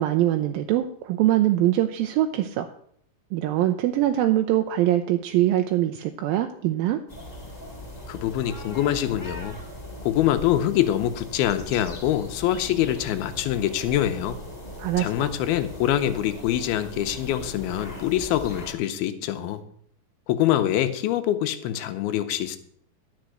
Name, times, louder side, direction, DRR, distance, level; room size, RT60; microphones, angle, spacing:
voice 1, 0.0-2.7 3.3-7.0 14.8-15.3, right 13 dB, 85° right, 6 dB, 2.3 m, -23 dB
sound 1, 7.1-18.7, left 1 dB, 15° left, 1.9 m, -39 dB
voice 2, 8.1-9.6 10.0-14.4 15.0-19.6 20.3-22.6, left 12 dB, 85° left, 9 dB, 2.7 m, -25 dB
11.5 x 6.2 x 7.7 m, 0.65 s
omnidirectional pair, 4.3 m